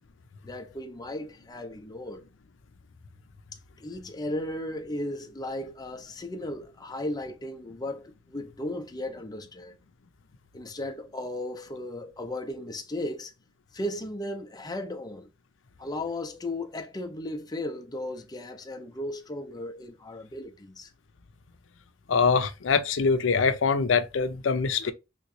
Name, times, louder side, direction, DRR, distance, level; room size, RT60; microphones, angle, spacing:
voice 1, 0.4-2.2 3.8-9.8 10.5-13.3 13.7-15.3 15.8-20.9, left 1 dB, 20° left, 0.6 m, -35 dB
voice 2, 22.1-24.9, left 5 dB, 85° left, 0.5 m, -24 dB
3.5 x 3.0 x 2.7 m
head